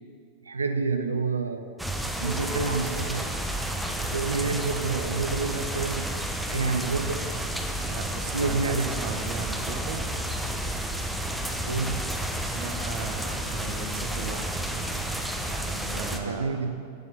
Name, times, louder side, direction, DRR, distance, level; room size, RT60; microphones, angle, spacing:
voice 1, 0.5-1.7 2.2-3.4 4.0-6.1 6.5-7.2 8.3-8.9 11.7-12.0 16.1-16.7, right 4 dB, 75° right, 8 dB, 0.7 m, -28 dB
sound 1, 1.8-16.2, right 1 dB, ahead, 1.0 m, -31 dB
voice 2, 7.9-10.1 12.3-14.8 15.6-16.6, right 5 dB, 45° right, 5 dB, 1.1 m, -37 dB
13.0 x 9.3 x 5.7 m, 2.3 s
figure-of-eight pair, 90°, 0 cm